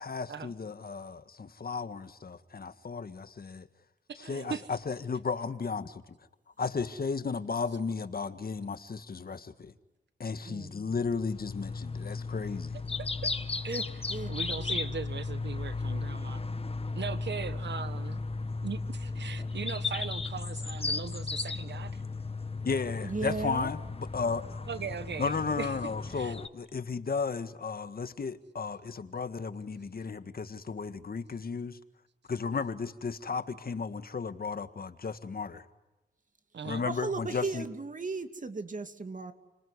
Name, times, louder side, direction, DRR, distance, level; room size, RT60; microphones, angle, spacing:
voice 1, 0.0-3.7 4.2-5.9 6.6-9.7 10.2-12.8 22.6-24.7 25.2-31.8 32.3-35.6 36.6-37.6, left 5 dB, 55° left, 1.8 m, -34 dB
voice 2, 4.1-4.7 13.0-13.3 13.6-13.8 14.3-16.4 16.9-18.2 18.6-22.0 24.7-25.7 26.1-26.3 36.5-36.9, right 6 dB, 75° right, 1.3 m, -39 dB
sound 1, 10.9-26.5, left 3 dB, 30° left, 1.5 m, -35 dB
voice 3, 23.0-23.7 36.9-39.3, right 3 dB, 45° right, 2.7 m, -36 dB
30.0 x 20.0 x 9.7 m
cardioid pair, 65°, 18 cm